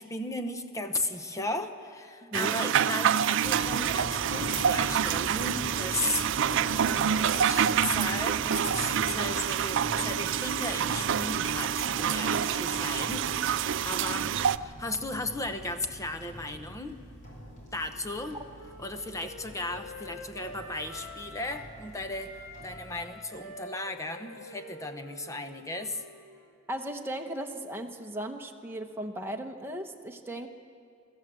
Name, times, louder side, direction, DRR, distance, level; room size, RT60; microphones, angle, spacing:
voice 1, 0.0-6.9 7.2-14.3 14.6-17.0 17.7-18.4 18.8-26.0, left 2 dB, 15° left, 7 dB, 1.0 m, -36 dB
voice 2, 2.2-2.6 26.7-30.5, right 1 dB, 10° right, 2 dB, 1.2 m, -36 dB
sound 1, 2.3-14.6, right 8 dB, 65° right, 0.4 m, -27 dB
sound 2, 3.4-23.0, equal, 40° left, 5.1 m, -43 dB
Wind instrument woodwind instrument, 17.4-21.8 22.1-26.6, left 1 dB, 65° left, 2.9 m, -47 dB
23.5 x 14.0 x 7.7 m, 2.4 s
head